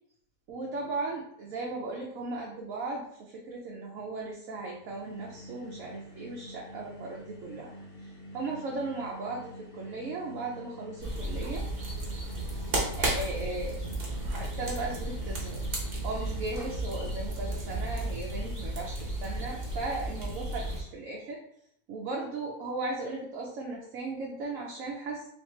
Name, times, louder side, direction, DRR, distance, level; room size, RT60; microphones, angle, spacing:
voice 1, 0.5-7.7 8.0-11.6 13.0-13.8 14.1-15.6 16.0-21.4 21.9-25.3, right 3 dB, 60° right, -2 dB, 1.0 m, -37 dB
sound 1, 4.7-17.3, equal, 65° left, 0.5 m, -47 dB
sound 2, 11.0-20.8, right 1 dB, 40° right, 1.0 m, -33 dB
3.5 x 3.4 x 3.2 m, 0.70 s
omnidirectional pair, 1.8 m